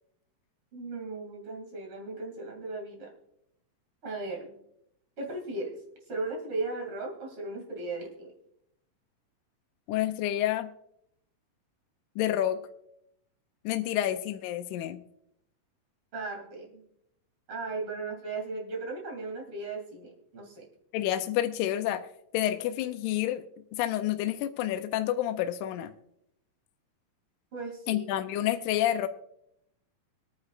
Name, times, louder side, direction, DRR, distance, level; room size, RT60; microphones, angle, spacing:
voice 1, 0.7-3.1 4.0-4.5 5.2-5.8 6.1-8.3 16.1-16.8 17.5-20.7 27.5-28.0, right 3 dB, 40° right, 0 dB, 3.3 m, -36 dB
voice 2, 9.9-10.7 12.2-12.6 13.7-15.0 20.9-22.1 22.3-23.4 23.7-25.9 27.9-29.1, left 12 dB, 80° left, 8 dB, 1.9 m, -29 dB
24.5 x 9.7 x 2.4 m, 0.76 s
omnidirectional pair, 4.0 m